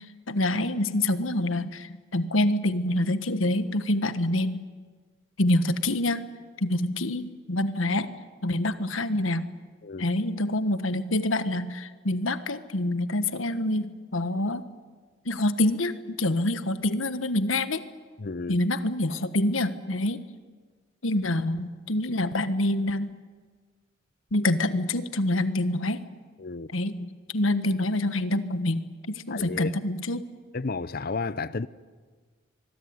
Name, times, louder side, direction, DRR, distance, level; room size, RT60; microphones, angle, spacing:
voice 1, 0.0-4.6 5.4-6.3 6.6-8.1 8.4-9.5 10.0-14.6 15.2-17.8 18.5-20.2 21.0-23.2 24.3-26.0 26.7-30.3, left 1 dB, 80° left, 1.4 m, -26 dB
voice 2, 18.2-18.6 26.4-26.7 29.3-29.7 30.5-31.7, left 3 dB, 50° left, 0.7 m, -32 dB
24.5 x 23.0 x 9.6 m
head